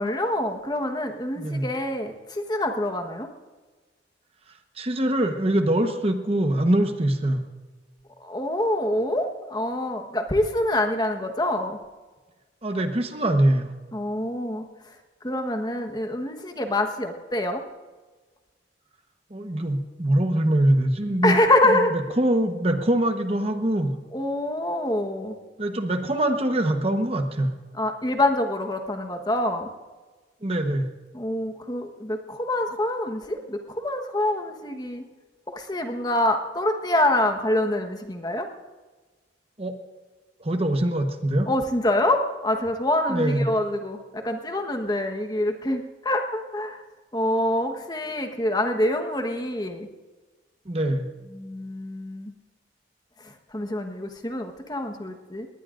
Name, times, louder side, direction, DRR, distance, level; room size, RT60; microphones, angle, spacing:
voice 1, 0.0-3.3 8.2-11.8 13.9-14.9 15.2-17.6 21.2-22.0 24.1-25.4 27.8-29.7 31.1-35.0 35.5-38.5 41.5-46.8 47.1-49.9 51.3-52.3 53.2-55.5, left 1 dB, 20° left, 5 dB, 1.2 m, -26 dB
voice 2, 1.4-1.7 4.8-7.4 12.6-13.7 19.3-21.4 21.7-24.0 25.6-27.5 30.4-30.9 39.6-39.7 40.4-41.5 43.1-43.5 50.7-51.1, right 1 dB, 35° right, 6 dB, 1.1 m, -23 dB
20.5 x 19.0 x 2.5 m, 1.3 s
head